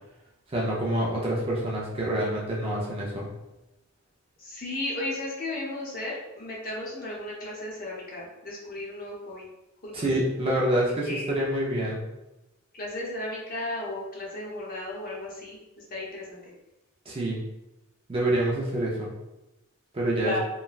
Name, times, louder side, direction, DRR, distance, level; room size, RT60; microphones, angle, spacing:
voice 1, 0.5-3.3 9.9-12.1 17.1-17.4 18.1-19.1 19.9-20.3, right 1 dB, 25° right, -3 dB, 0.4 m, -27 dB
voice 2, 4.4-9.5 9.8-10.1 11.0-11.3 12.7-16.4 20.2-20.4, left 2 dB, 40° left, -5 dB, 0.8 m, -35 dB
3.0 x 2.2 x 2.3 m, 0.96 s
head